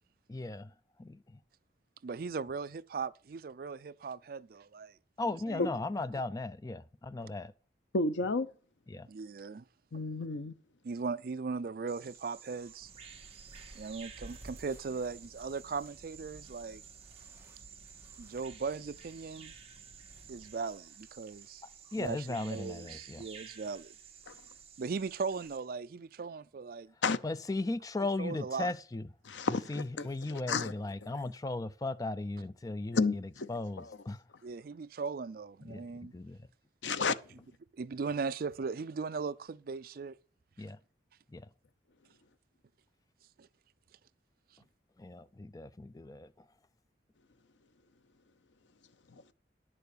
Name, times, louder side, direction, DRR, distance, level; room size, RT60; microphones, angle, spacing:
voice 1, 0.3-0.7 1.0-1.4 5.2-7.5 8.9-9.1 21.9-23.3 27.2-29.1 29.5-34.2 35.6-36.5 40.6-40.8 41.3-41.5 45.0-46.5, left 2 dB, 20° left, 0.4 m, -37 dB
voice 2, 2.0-4.9 5.5-5.7 9.0-9.6 10.8-12.9 13.7-16.8 18.2-19.5 20.3-21.6 22.0-23.9 24.8-26.9 28.2-28.7 34.4-36.1 37.7-40.2 43.4-43.5, right 5 dB, 55° right, 0.4 m, -38 dB
voice 3, 7.9-8.5 9.9-10.6 24.3-24.4 27.0-27.2 29.3-30.7 32.9-33.5 33.8-34.0 36.8-37.1 49.1-49.2, left 4 dB, 90° left, 0.7 m, -32 dB
Bird vocalization bird call bird song, 11.9-25.6, right 7 dB, 35° right, 1.5 m, -53 dB
sound 1, 12.8-20.5, right 1 dB, 15° right, 1.9 m, -55 dB
10.0 x 6.9 x 6.7 m
head